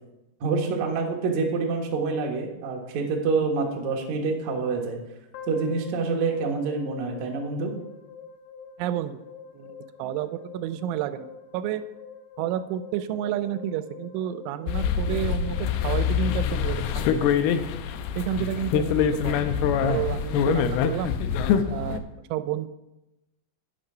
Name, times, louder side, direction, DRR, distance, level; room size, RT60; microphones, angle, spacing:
voice 1, 0.4-5.0 5.5-7.7, right 4 dB, 65° right, 1 dB, 1.9 m, -27 dB
sound 1, 5.3-17.6, left 5 dB, 70° left, 2.8 m, -45 dB
voice 2, 8.8-9.2 9.5-11.8 12.4-17.3 18.2-19.5 19.8-21.1 21.7-22.7, right 11 dB, 90° right, 12 dB, 3.0 m, -30 dB
sound 2, 14.7-22.0, left 8 dB, 90° left, 2.3 m, -25 dB
10.5 x 9.5 x 3.9 m, 0.94 s
omnidirectional pair, 5.4 m